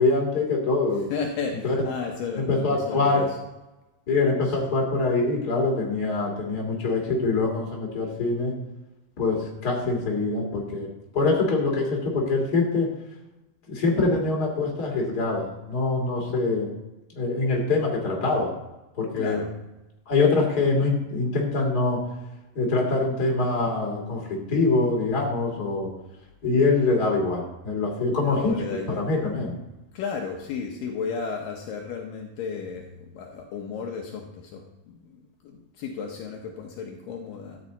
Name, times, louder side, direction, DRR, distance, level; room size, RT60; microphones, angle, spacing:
voice 1, 0.0-1.0 1.6-1.8 2.5-3.2 4.1-8.5 9.2-10.9 11.1-12.9 13.7-16.7 17.2-18.5 19.0-19.4 20.1-22.0 22.5-25.9 26.4-28.6 28.9-29.5, left 3 dB, 30° left, 0 dB, 2.9 m, -24 dB
voice 2, 1.1-3.4 19.2-19.5 28.1-29.0 29.9-37.6, left 5 dB, 75° left, 2 dB, 2.6 m, -34 dB
13.0 x 9.6 x 4.1 m, 0.99 s
omnidirectional pair, 4.2 m